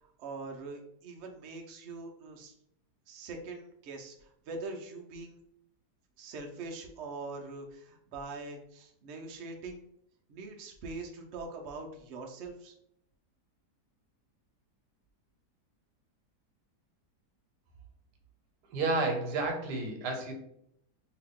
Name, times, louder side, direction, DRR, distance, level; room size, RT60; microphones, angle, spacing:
voice 1, 0.0-2.5 3.1-5.4 6.2-9.8 10.3-12.7, right 3 dB, 60° right, 1 dB, 0.7 m, -43 dB
voice 2, 18.7-20.3, right 3 dB, 80° right, 3 dB, 1.3 m, -31 dB
2.8 x 2.8 x 3.6 m, 0.74 s
omnidirectional pair, 1.8 m